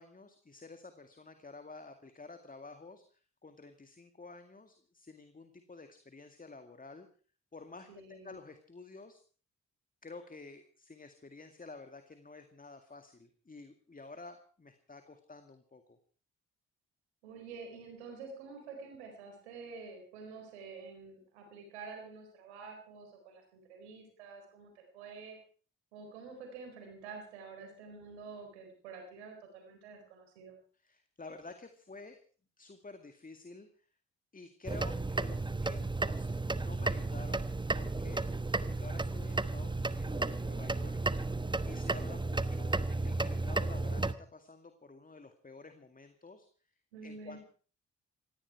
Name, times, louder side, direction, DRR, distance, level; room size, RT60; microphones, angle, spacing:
voice 1, 0.0-7.1 7.5-9.2 10.0-16.0 30.7-32.2 32.6-33.7 34.3-41.3 41.6-46.5 47.0-47.4, left 3 dB, 25° left, 8 dB, 2.1 m, -51 dB
voice 2, 7.9-8.4 17.2-25.4 25.9-30.6 46.9-47.4, right 4 dB, 90° right, 3 dB, 4.4 m, -48 dB
sound 1, 34.7-44.1, right 2 dB, 15° right, 1.1 m, -33 dB
17.5 x 16.0 x 4.7 m, 0.41 s
hypercardioid pair, 45°, 32 cm